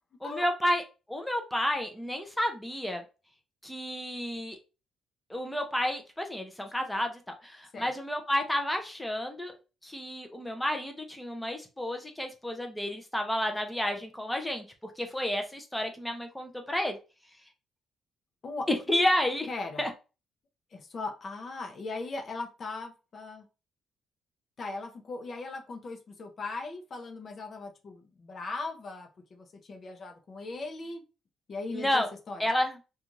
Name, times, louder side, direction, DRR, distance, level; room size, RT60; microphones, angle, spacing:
voice 1, 0.2-0.8 1.1-3.0 3.6-4.6 5.3-9.5 9.8-14.6 15.0-17.0 18.7-19.5 19.8-19.9 31.7-32.1 32.4-32.8, left 1 dB, 5° left, 4 dB, 0.6 m, -30 dB
voice 2, 19.5-19.8 20.7-23.5 24.6-31.0 31.5-32.4, left 3 dB, 45° left, 4 dB, 0.6 m, -39 dB
2.5 x 2.4 x 3.0 m, 0.31 s
cardioid pair, 90°, 0 cm